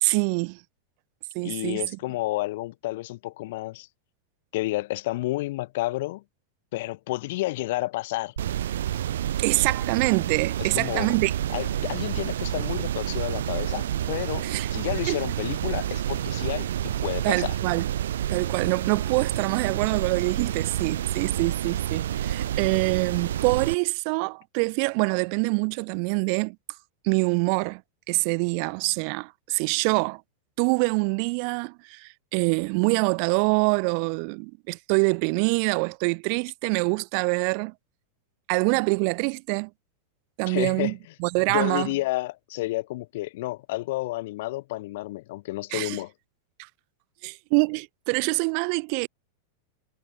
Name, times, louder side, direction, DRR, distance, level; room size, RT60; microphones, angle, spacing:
voice 1, 0.0-0.6 1.3-1.8 9.4-11.3 14.4-14.7 15.1-15.2 17.2-17.8 18.3-26.6 27.0-27.8 28.1-30.2 30.6-37.7 38.5-39.7 40.4-40.9 41.2-41.9 45.7-46.0 47.2-49.1, right 40 dB or more, 45° right, 0.5 m, -25 dB
voice 2, 1.4-3.9 4.5-6.2 6.7-8.3 10.6-11.2 11.5-17.6 40.5-40.9 41.5-46.1, left 18 dB, 50° left, 1.2 m, -30 dB
sound 1, 8.4-23.7, right 11 dB, 60° right, 1.9 m, -29 dB
figure-of-eight pair, 90°, 0 cm